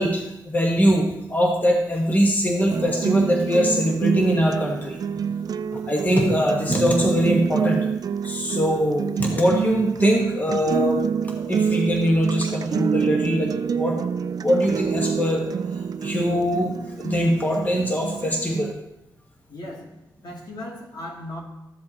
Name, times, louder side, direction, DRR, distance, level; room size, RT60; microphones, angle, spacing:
voice 1, 0.0-5.0 5.9-7.8 8.2-11.0 11.4-14.0 14.4-15.5 16.0-18.7, equal, 25° left, 0 dB, 1.4 m, -22 dB
sound 1, 2.7-18.7, right 7 dB, 60° right, 0.4 m, -27 dB
voice 2, 19.5-19.9 20.2-21.4, left 1 dB, 70° left, -3 dB, 2.7 m, -36 dB
13.5 x 7.5 x 2.9 m, 0.90 s
wide cardioid pair, 95°, 7 cm